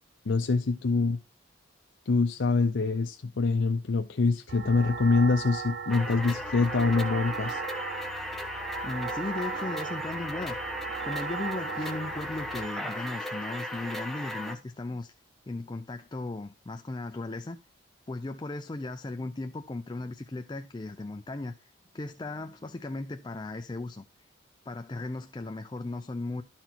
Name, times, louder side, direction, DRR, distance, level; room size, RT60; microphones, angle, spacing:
voice 1, 0.3-1.2 2.1-7.6, left 3 dB, 70° left, 0.5 m, -25 dB
sound 1, 4.5-12.7, right 6 dB, 55° right, 0.4 m, -38 dB
sound 2, 5.9-14.6, left 1 dB, ahead, 1.0 m, -36 dB
voice 2, 8.8-10.6 11.0-15.1 15.5-17.6 18.1-24.0 24.7-26.4, left 2 dB, 20° left, 0.4 m, -36 dB
12.5 x 4.3 x 4.4 m
head